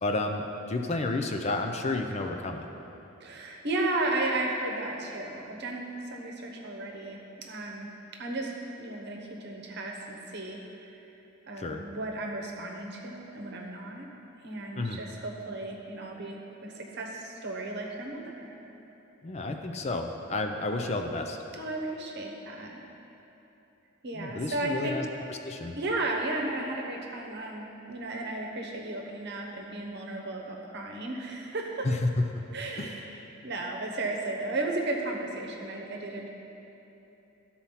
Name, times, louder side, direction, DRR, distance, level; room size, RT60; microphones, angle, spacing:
voice 1, 0.0-2.7 11.6-11.8 14.8-15.0 19.2-21.4 24.1-25.8 31.8-32.0 32.3-32.4 32.8-32.9, left 2 dB, 30° left, 4 dB, 0.4 m, -31 dB
voice 2, 3.2-7.2 7.5-7.9 8.2-8.5 8.8-10.6 11.0-11.1 11.5-14.1 14.4-18.5 21.5-22.8 24.0-25.0 25.7-31.9 32.5-36.3, right 2 dB, 55° right, 0 dB, 1.1 m, -34 dB
12.5 x 4.3 x 5.7 m, 3.0 s
head